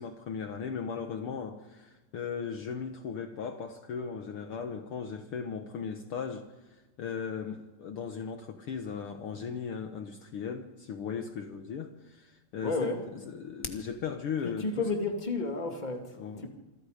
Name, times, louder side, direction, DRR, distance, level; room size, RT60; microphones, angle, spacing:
voice 1, 0.0-14.9 16.2-16.5, left 6 dB, 80° left, 6 dB, 1.2 m, -37 dB
voice 2, 12.6-13.0 14.4-16.1 16.4-16.5, left 3 dB, 15° left, 3 dB, 1.7 m, -31 dB
27.5 x 23.0 x 5.1 m, 1.2 s
omnidirectional pair, 4.2 m